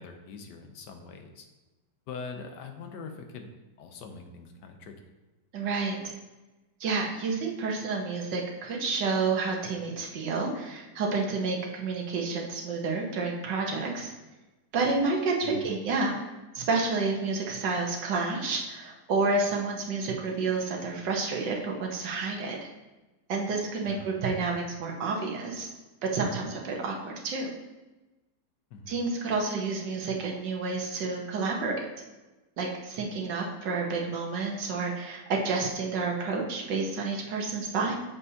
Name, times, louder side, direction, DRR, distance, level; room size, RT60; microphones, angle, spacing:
voice 1, 0.0-1.5 2.1-3.5 3.8-5.1 15.4-15.7 23.9-24.1 28.7-28.9, left 4 dB, 75° left, 5 dB, 1.3 m, -43 dB
voice 2, 5.5-6.1 6.8-14.1 14.7-16.2 16.5-22.7 23.3-25.7 26.0-27.5 28.9-31.8 32.6-38.0, right 4 dB, 80° right, 0 dB, 1.7 m, -30 dB
7.0 x 6.9 x 2.8 m, 1.1 s
omnidirectional pair, 1.9 m